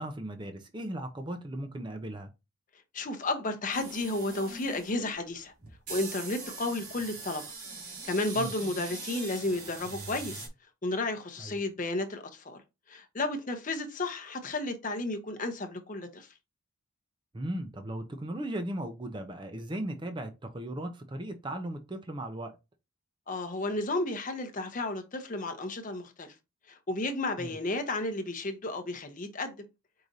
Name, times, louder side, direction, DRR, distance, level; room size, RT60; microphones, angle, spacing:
voice 1, 0.0-2.3 8.4-8.5 11.4-11.5 17.3-22.5 27.4-27.6, right 1 dB, 20° right, 0.5 m, -37 dB
voice 2, 2.9-5.5 5.9-7.5 8.0-10.5 10.8-12.6 12.9-16.3 23.3-26.3 26.7-29.6, left 2 dB, 35° left, 0.7 m, -33 dB
sound 1, 3.7-10.5, right 3 dB, 85° right, 1.9 m, -42 dB
4.7 x 2.6 x 3.9 m
head